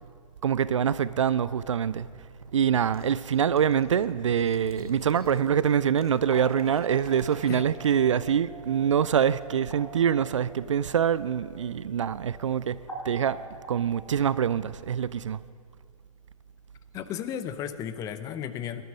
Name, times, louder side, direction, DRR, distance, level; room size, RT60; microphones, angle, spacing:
voice 1, 0.4-2.1 2.5-12.8 13.0-13.4 13.7-15.4, right 8 dB, 55° right, 0.5 m, -25 dB
sound 1, 1.7-8.1, right 2 dB, 85° right, 1.5 m, -49 dB
sound 2, 5.0-13.8, right 2 dB, 90° left, 4.7 m, -45 dB
voice 2, 16.9-18.8, left 9 dB, 20° left, 0.7 m, -34 dB
20.0 x 12.5 x 5.1 m
figure-of-eight pair, 115°, 19 cm